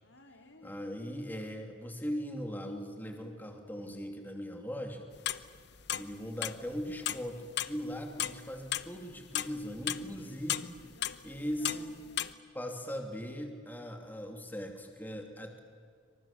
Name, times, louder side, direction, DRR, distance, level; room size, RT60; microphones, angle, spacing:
voice 1, 0.0-0.8 9.9-12.3, left 2 dB, 85° left, 4 dB, 3.7 m, -58 dB
voice 2, 0.6-5.1 6.0-10.7 11.2-12.0 12.5-15.6, equal, 10° left, 3 dB, 2.9 m, -39 dB
sound 1, 5.2-6.2 6.4-7.7 8.1-10.2 10.5-12.3, left 11 dB, 60° left, 0.9 m, -34 dB
28.0 x 25.5 x 7.5 m, 2.1 s
head